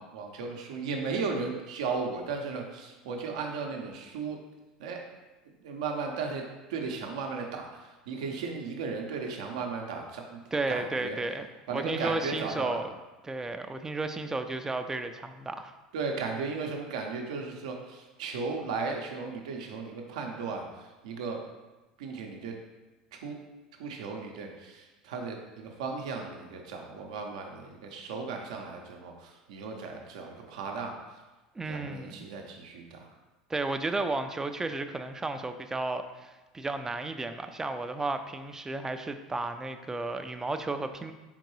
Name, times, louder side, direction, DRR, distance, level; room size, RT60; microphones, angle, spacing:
voice 1, 0.0-4.4 4.8-5.0 5.6-6.4 6.7-10.4 10.7-11.2 11.7-12.8 15.9-21.4 22.0-22.5 23.2-23.4 23.8-30.9 31.6-33.1, right 4 dB, 70° right, 2 dB, 0.6 m, -35 dB
voice 2, 10.5-12.9 13.2-15.7 31.6-32.3 33.5-41.1, right 2 dB, 15° right, 8 dB, 0.4 m, -33 dB
4.4 x 3.7 x 3.1 m, 1.2 s
hypercardioid pair, 80°, 4 cm